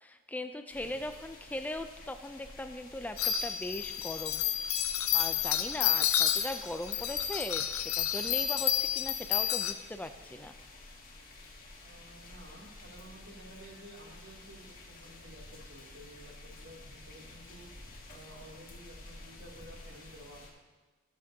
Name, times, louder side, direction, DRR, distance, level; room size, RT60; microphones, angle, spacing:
voice 1, 0.0-4.4 5.1-10.5, left 1 dB, 10° left, 8 dB, 0.4 m, -39 dB
sound 1, 0.7-20.5, left 2 dB, 45° left, 1.8 m, -51 dB
sound 2, 3.2-9.7, left 10 dB, 75° left, 0.6 m, -30 dB
voice 2, 11.8-17.7 18.1-20.5, right 1 dB, 80° right, -3 dB, 2.7 m, -52 dB
18.0 x 7.6 x 2.8 m, 1.3 s
head